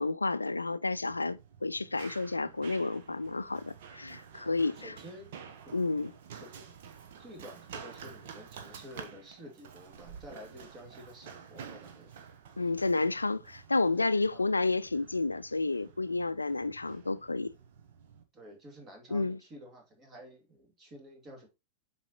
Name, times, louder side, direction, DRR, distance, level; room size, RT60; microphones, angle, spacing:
voice 1, 0.0-4.9 5.7-6.1 12.6-17.5 19.1-19.4, left 3 dB, 80° left, 0.3 m, -31 dB
Run, 0.9-18.2, right 7 dB, 55° right, 1.1 m, -50 dB
voice 2, 4.7-5.4 5.6-5.7 6.3-6.8 7.2-12.1 14.0-14.4 18.3-21.5, equal, 25° right, 2.5 m, -50 dB
7.3 x 4.5 x 3.0 m
figure-of-eight pair, 90°, 0 cm